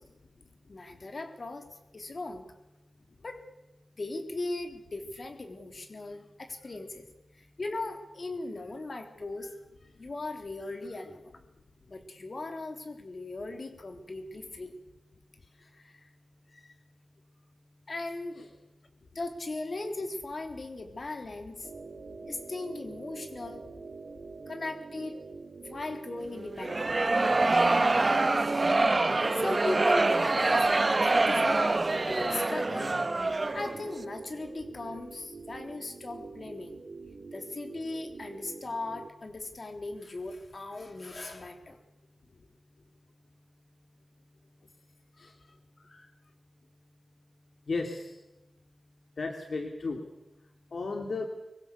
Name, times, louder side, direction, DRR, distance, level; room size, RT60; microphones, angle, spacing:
voice 1, 0.7-1.7 1.9-2.4 3.2-3.4 4.0-7.1 7.3-9.6 10.0-11.3 11.9-14.7 15.6-16.1 16.5-16.7 17.9-18.4 19.1-21.7 22.3-23.6 24.5-25.2 25.6-27.1 29.3-30.6 30.9-31.7 32.0-32.9 33.5-36.8 37.3-41.8 45.2-45.4 45.8-46.1, left 2 dB, 50° left, 5 dB, 3.7 m, -38 dB
sound 1, 21.6-39.1, right 4 dB, 75° right, 2.3 m, -45 dB
sound 2, 26.6-33.8, right 2 dB, 35° right, 1.3 m, -25 dB
voice 2, 47.7-48.1 49.2-50.0 50.7-51.3, left 3 dB, 70° left, 3 dB, 2.7 m, -34 dB
24.5 x 24.5 x 6.9 m, 0.95 s
wide cardioid pair, 105°, 0 cm